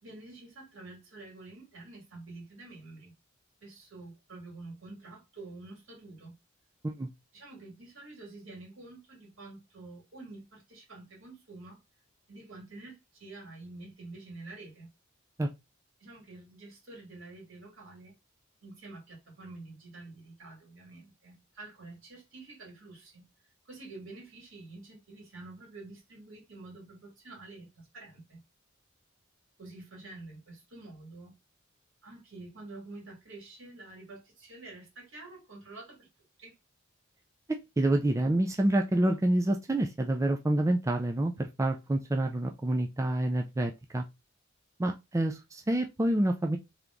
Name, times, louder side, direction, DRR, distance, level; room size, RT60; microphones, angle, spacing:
voice 1, 0.0-3.1 3.6-6.4 7.3-11.8 12.3-14.9 16.0-18.2 18.6-23.3 23.7-28.4 29.6-31.3 32.0-36.1 36.4-36.5, right 2 dB, 70° right, 2.3 m, -48 dB
voice 2, 37.5-44.0 44.8-46.6, right 1 dB, 15° right, 0.4 m, -28 dB
3.5 x 2.9 x 3.7 m
head